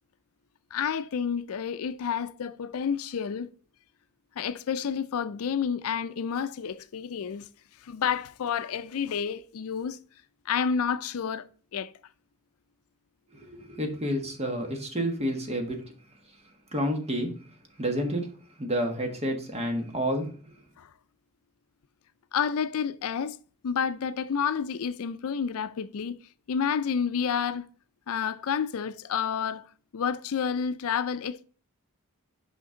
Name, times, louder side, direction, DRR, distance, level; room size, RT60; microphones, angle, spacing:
voice 1, 0.7-3.5 4.4-7.5 7.8-10.0 10.5-11.9 20.8-20.9 22.3-23.4 23.6-26.2 26.5-27.7 28.1-29.7 29.9-31.4, left 7 dB, 70° left, 0.4 m, -30 dB
voice 2, 13.3-15.8 16.7-17.4 17.8-18.3 18.6-20.4, equal, 30° right, 1.4 m, -29 dB
6.1 x 5.1 x 3.8 m
head